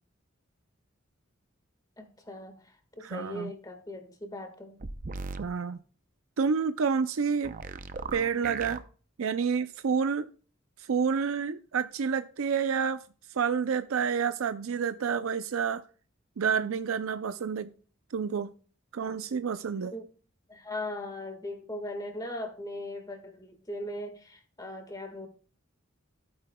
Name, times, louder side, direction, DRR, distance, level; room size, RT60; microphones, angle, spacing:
voice 1, 2.0-4.8 19.9-20.0 20.5-25.3, left 1 dB, 20° left, 1.6 m, -39 dB
voice 2, 3.0-3.5 5.4-5.8 6.4-7.5 8.1-8.8 9.2-10.3 10.8-13.0 13.3-15.8 16.4-17.7 18.1-18.5 18.9-20.0, right 6 dB, 90° right, 0.5 m, -29 dB
sound 1, 4.8-5.5 7.4-8.8, right 4 dB, 40° right, 0.6 m, -37 dB
14.0 x 8.7 x 2.2 m
head